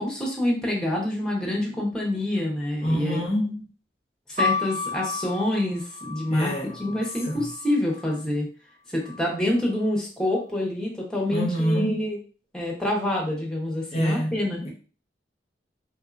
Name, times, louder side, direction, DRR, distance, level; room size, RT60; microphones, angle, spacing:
voice 1, 0.0-3.2 4.3-8.5 8.9-12.2 12.5-14.6, left 1 dB, 5° left, 0.8 m, -27 dB
voice 2, 2.8-3.6 6.3-6.9 7.3-7.4 11.3-12.1 13.9-14.3 14.6-14.7, equal, 35° left, 0.6 m, -26 dB
sound 1, 4.4-8.2 9.0-9.8, left 4 dB, 40° right, 0.4 m, -32 dB
3.1 x 2.6 x 2.4 m
head